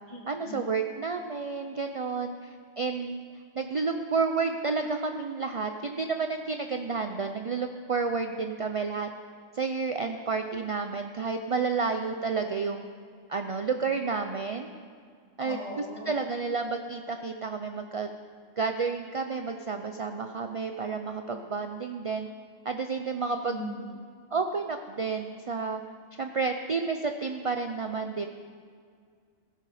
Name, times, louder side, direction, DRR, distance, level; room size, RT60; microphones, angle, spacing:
voice 1, 0.3-3.2 3.6-9.1 9.5-12.8 13.3-14.7 15.4-15.6 16.1-18.1 18.6-22.3 22.6-23.7 24.3-25.8 26.2-28.3, right 4 dB, 50° right, 6 dB, 0.4 m, -30 dB
voice 2, 15.4-16.1 23.3-23.8, left 1 dB, 25° left, -4 dB, 3.1 m, -39 dB
16.0 x 13.0 x 5.0 m, 2.1 s
omnidirectional pair, 1.3 m